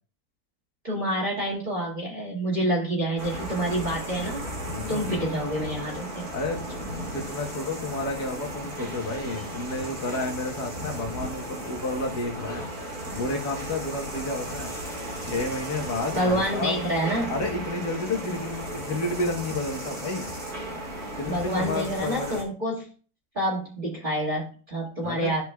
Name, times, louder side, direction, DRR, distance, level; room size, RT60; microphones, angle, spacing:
voice 1, 0.8-4.4 4.9-6.3 16.1-17.3 21.3-22.9 23.4-25.4, right 1 dB, 30° right, -5 dB, 2.2 m, -28 dB
sound 1, 3.2-22.4, right 1 dB, 65° right, 2.8 m, -35 dB
voice 2, 4.6-5.1 6.3-6.7 7.1-12.7 13.1-14.8 15.2-16.8 17.3-20.3 21.0-22.4 25.0-25.4, left 2 dB, 75° left, 2 dB, 1.8 m, -31 dB
13.5 x 4.8 x 2.3 m, 0.38 s
omnidirectional pair, 1.7 m